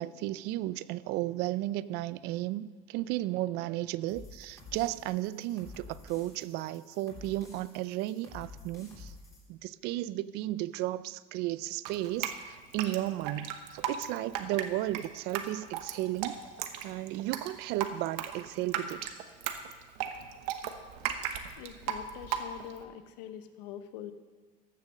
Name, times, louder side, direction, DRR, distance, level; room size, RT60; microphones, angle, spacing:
voice 1, 0.0-9.1 9.5-16.3 16.8-19.0, right 15 dB, 55° right, 17 dB, 0.4 m, -34 dB
sound 1, 4.1-9.4, left 3 dB, 15° left, 3.6 m, -50 dB
Drip, 11.9-22.8, right 9 dB, 75° right, 1.1 m, -36 dB
voice 2, 21.6-24.1, left 10 dB, 80° left, 10 dB, 1.0 m, -44 dB
14.0 x 7.2 x 6.3 m, 1.4 s
supercardioid pair, 135°, 20 cm